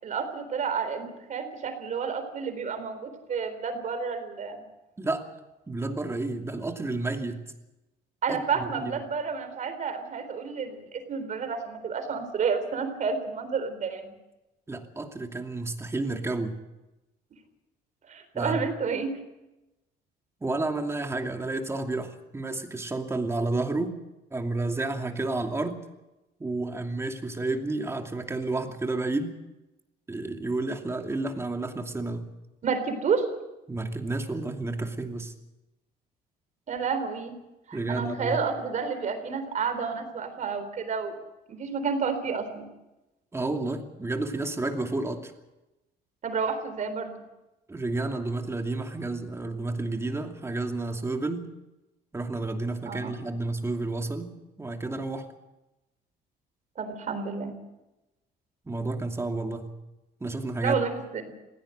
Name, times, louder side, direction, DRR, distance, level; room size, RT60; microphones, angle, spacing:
voice 1, 0.0-4.6 8.2-14.1 18.1-19.1 32.6-33.3 36.7-37.3 37.7-41.2 41.5-42.7 46.2-47.1 52.9-53.1 56.8-57.5 60.6-61.2, right 5 dB, 45° right, 8 dB, 3.9 m, -30 dB
voice 2, 5.0-5.3 5.7-7.4 8.3-8.9 14.7-16.5 18.3-18.6 20.4-24.0 24.3-25.8 26.4-29.3 30.1-32.2 33.7-35.3 37.7-38.4 43.3-45.3 47.7-51.5 52.1-54.3 54.6-55.3 58.6-59.7 60.2-60.8, right 2 dB, 15° right, 4 dB, 2.7 m, -31 dB
20.5 x 16.5 x 7.9 m, 0.98 s
cardioid pair, 110°, 17 cm